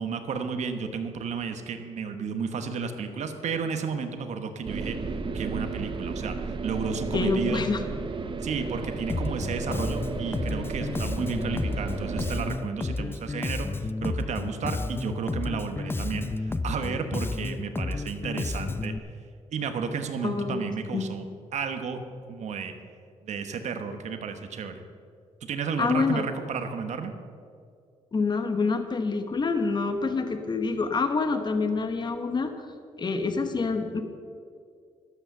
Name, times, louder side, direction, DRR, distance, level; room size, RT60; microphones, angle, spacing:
voice 1, 0.0-5.0 5.3-7.6 8.4-18.9 19.5-22.0 22.3-22.7 23.2-24.8 25.4-27.1, right 5 dB, 70° right, 7 dB, 1.2 m, -32 dB
sound 1, 4.7-12.6, right 4 dB, 45° right, 1.0 m, -33 dB
voice 2, 7.1-7.8 20.2-21.1 25.8-26.2 28.1-32.5 33.0-34.0, left 4 dB, 35° left, 7 dB, 1.1 m, -27 dB
Bass guitar, 9.1-19.0, left 3 dB, 20° left, 0.5 m, -31 dB
12.0 x 8.3 x 6.7 m, 2.3 s
cardioid pair, 80°, 12 cm